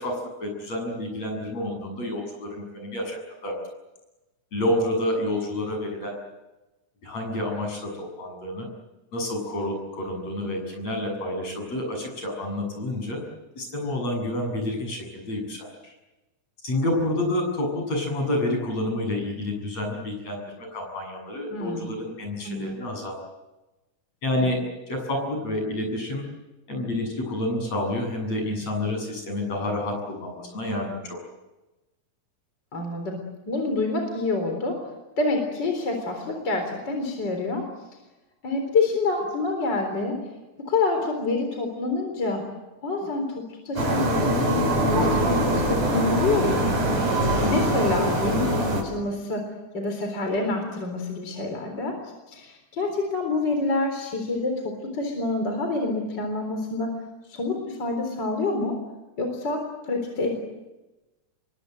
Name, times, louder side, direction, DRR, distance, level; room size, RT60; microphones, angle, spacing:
voice 1, 0.0-3.6 4.5-6.2 7.0-8.7 9.1-13.2 13.6-15.9 16.6-23.1 24.2-26.3 26.7-31.2 47.4-47.7, left 1 dB, 55° left, 2 dB, 8.6 m, -29 dB
voice 2, 21.5-21.9 22.4-22.7 32.7-34.8 35.2-37.6 38.4-40.2 40.7-42.4 42.8-46.8 47.5-49.4 49.7-52.0 52.3-56.9 57.3-58.7 59.2-60.3, left 3 dB, 35° left, 4 dB, 4.4 m, -27 dB
sound 1, 43.8-48.8, right 1 dB, 60° right, 6.7 m, -23 dB
28.0 x 23.0 x 7.9 m, 1.1 s
omnidirectional pair, 3.5 m